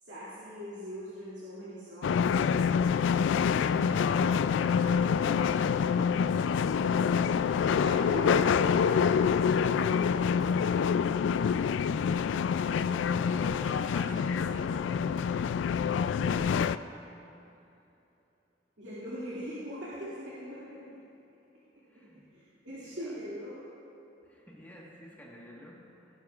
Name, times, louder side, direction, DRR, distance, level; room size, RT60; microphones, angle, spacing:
voice 1, 0.0-2.4 7.5-9.3 9.6-10.5 14.5-14.6 16.0-17.0 18.8-21.0 21.9-23.7, equal, 80° right, -10 dB, 2.3 m, -41 dB
sound 1, 2.0-16.8, left 7 dB, 85° left, 0.3 m, -26 dB
voice 2, 12.8-16.0 21.9-22.3 22.8-23.2 24.2-26.2, equal, 10° left, -4 dB, 1.4 m, -47 dB
18.5 x 11.0 x 2.4 m, 2.9 s
head